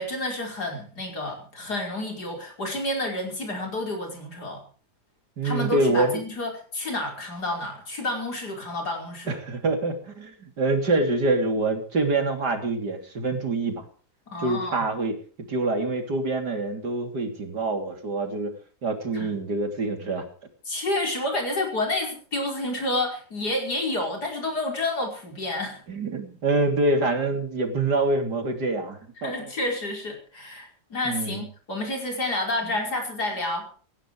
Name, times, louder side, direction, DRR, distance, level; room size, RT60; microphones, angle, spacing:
voice 1, 0.0-4.6 5.4-9.4 14.3-14.9 19.1-19.3 20.7-25.8 29.2-33.7, left 1 dB, 75° left, 2 dB, 5.7 m, -29 dB
voice 2, 5.4-6.2 9.3-13.9 14.4-15.2 15.5-18.6 18.8-20.2 25.9-29.5 31.1-31.4 32.7-32.8, right 2 dB, 85° right, 5 dB, 3.7 m, -26 dB
17.5 x 16.0 x 4.8 m, 0.41 s
omnidirectional pair, 1.7 m